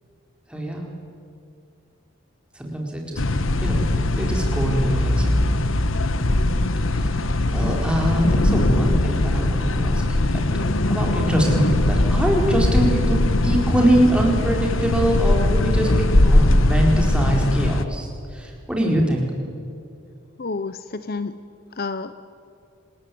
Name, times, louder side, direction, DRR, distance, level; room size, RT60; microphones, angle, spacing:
voice 1, 0.5-0.9 2.5-3.2 3.6-3.8 4.2-5.6 6.9-10.4 10.9-19.2, right 1 dB, 5° right, -1 dB, 4.5 m, -23 dB
sound 1, 3.2-17.8, left 1 dB, 70° left, 1.2 m, -20 dB
voice 2, 20.4-21.3 21.8-22.1, left 3 dB, 45° left, 13 dB, 0.7 m, -29 dB
27.5 x 20.0 x 9.4 m, 2.4 s
head